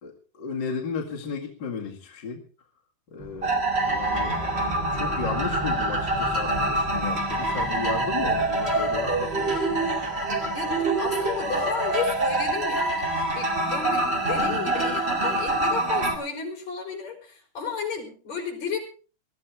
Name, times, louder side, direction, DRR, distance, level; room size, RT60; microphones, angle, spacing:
voice 1, 0.0-2.4 3.1-4.4 4.9-10.0, left 5 dB, 35° left, -2 dB, 2.4 m, -34 dB
sound 1, 3.2-13.3, left 1 dB, ahead, 2.5 m, -39 dB
sound 2, 3.4-16.2, right 2 dB, 20° right, 2.2 m, -25 dB
voice 2, 10.5-13.1 13.4-18.8, left 5 dB, 55° left, 3 dB, 5.3 m, -33 dB
21.0 x 13.5 x 3.4 m, 0.38 s
omnidirectional pair, 3.8 m